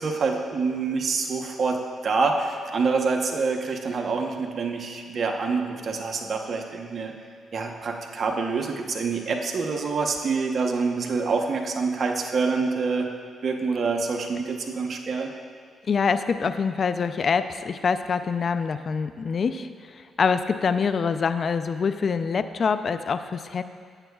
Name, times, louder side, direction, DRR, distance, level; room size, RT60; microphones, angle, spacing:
voice 1, 0.0-7.1 7.5-13.1 13.4-15.3, right 4 dB, 55° right, 2 dB, 1.0 m, -26 dB
voice 2, 15.9-19.7 20.2-23.6, left 5 dB, 55° left, 11 dB, 0.4 m, -25 dB
14.5 x 8.9 x 2.4 m, 2.1 s
supercardioid pair, 65°, 0 cm